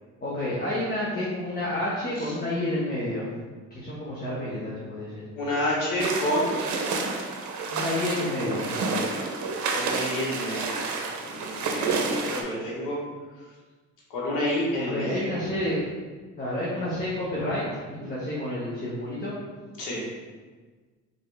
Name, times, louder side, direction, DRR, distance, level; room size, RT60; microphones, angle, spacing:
voice 1, 0.2-3.3 3.7-5.2 7.7-8.7 14.7-15.8 16.4-17.6 17.9-19.4, left 1 dB, 30° left, -7 dB, 1.2 m, -29 dB
voice 2, 5.4-6.6 9.7-10.7 11.2-13.0 14.1-15.2 19.8-20.0, left 1 dB, 85° left, -5 dB, 1.4 m, -29 dB
sound 1, 6.0-12.4, right 4 dB, 70° right, 0.7 m, -29 dB
3.8 x 3.6 x 3.5 m, 1.4 s
cardioid pair, 90°, 30 cm